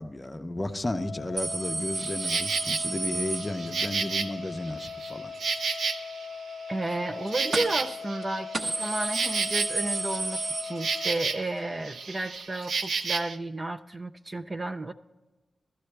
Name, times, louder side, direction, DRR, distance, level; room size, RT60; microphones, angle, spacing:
voice 1, 0.0-5.3, left 1 dB, 20° left, 8 dB, 0.7 m, -33 dB
sound 1, 0.9-11.2, left 6 dB, 80° left, 0.4 m, -40 dB
sound 2, 1.4-4.1 7.5-7.9 8.2-8.3 8.5-11.3 11.6-11.7 12.7-12.8, right 3 dB, 55° right, 1.0 m, -32 dB
Insect, 2.0-2.8 3.3-6.4 6.7-11.6 11.8-13.4, right 4 dB, 80° right, 0.6 m, -32 dB
voice 2, 6.7-14.9, right 2 dB, 30° right, 7 dB, 0.4 m, -32 dB
15.0 x 13.5 x 3.3 m, 1.2 s
wide cardioid pair, 100°, 0 cm